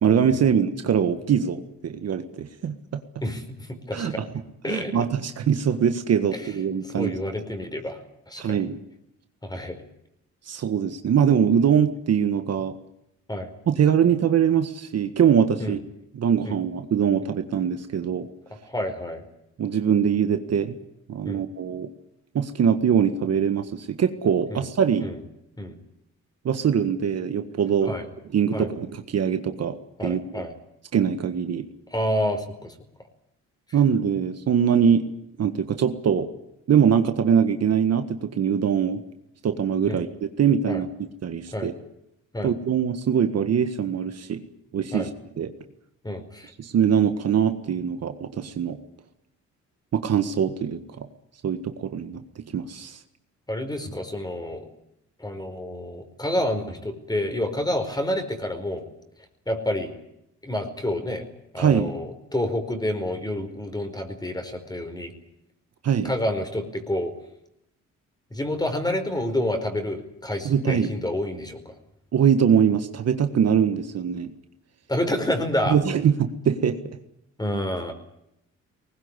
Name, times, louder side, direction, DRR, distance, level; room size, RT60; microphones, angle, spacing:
voice 1, 0.0-2.8 3.9-4.3 4.7-7.2 8.4-8.8 10.5-12.7 13.7-15.8 16.1-18.3 19.6-20.8 21.1-21.9 22.4-25.1 26.5-27.9 28.3-29.8 30.0-30.5 30.9-31.7 33.7-35.1 35.4-36.3 36.7-39.0 39.4-41.7 42.4-44.4 44.7-45.1 45.4-45.5 46.6-48.8 49.9-50.8 51.4-52.2 52.5-53.0 61.6-61.9 65.8-66.1 70.5-70.9 72.1-74.3 75.7-76.8, right 8 dB, 55° right, 8 dB, 1.7 m, -22 dB
voice 2, 3.2-5.0 6.3-6.5 6.8-8.0 8.3-8.6 9.4-9.8 13.3-13.5 15.6-15.8 16.4-16.6 18.7-19.2 21.2-21.4 24.5-24.6 25.0-25.2 25.6-25.8 27.8-28.1 28.5-28.7 30.0-30.5 31.9-32.7 39.9-40.0 40.7-40.8 41.5-41.7 42.3-42.5 44.9-45.1 46.0-46.5 53.5-54.7 55.2-58.8 59.5-59.9 60.4-61.2 61.5-65.1 66.0-67.1 68.3-71.7 74.9-75.8 77.4-77.9, left 1 dB, 15° left, 8 dB, 4.8 m, -29 dB
20.5 x 19.0 x 9.9 m, 0.81 s
cardioid pair, 90°, 30 cm